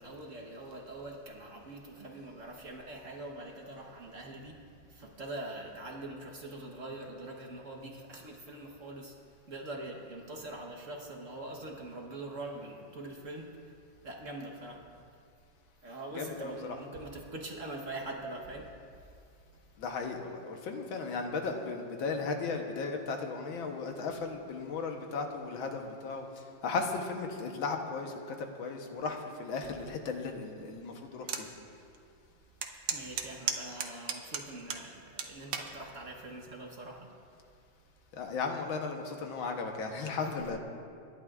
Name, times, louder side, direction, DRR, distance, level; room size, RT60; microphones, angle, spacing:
voice 1, 0.0-4.6 4.9-9.1 9.5-13.6 14.0-14.8 15.8-18.7 24.1-24.2 32.9-37.1 40.1-40.6, right 2 dB, 45° right, 0 dB, 1.3 m, -43 dB
voice 2, 16.2-16.8 19.8-26.3 26.6-31.5 38.1-40.6, left 4 dB, 80° left, 3 dB, 1.8 m, -36 dB
sound 1, 31.3-31.5 31.9-32.0 32.6-34.8 35.2-35.7 36.4-36.7, right 7 dB, 75° right, 1.6 m, -34 dB
26.5 x 11.5 x 2.4 m, 2.4 s
omnidirectional pair, 2.1 m